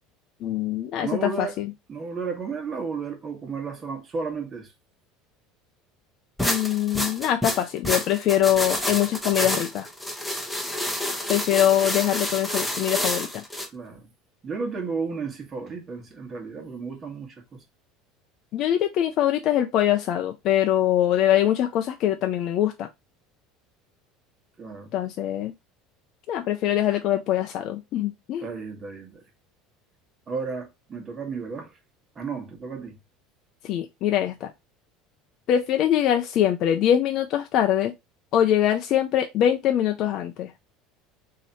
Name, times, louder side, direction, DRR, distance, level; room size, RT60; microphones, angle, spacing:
voice 1, 0.4-1.7 6.4-9.9 11.3-13.4 18.5-22.9 24.9-25.5 26.3-28.5 33.6-34.5 35.5-37.9 38.3-40.5, left 11 dB, 55° left, 0.4 m, -23 dB
voice 2, 1.0-1.6 1.9-4.7 13.7-14.1 14.4-17.6 24.6-24.9 28.4-29.2 30.3-31.7 32.1-33.0, right 5 dB, 30° right, 1.4 m, -33 dB
sound 1, 6.4-13.7, left 1 dB, ahead, 1.0 m, -28 dB
3.2 x 2.8 x 4.0 m
supercardioid pair, 100°, 0 cm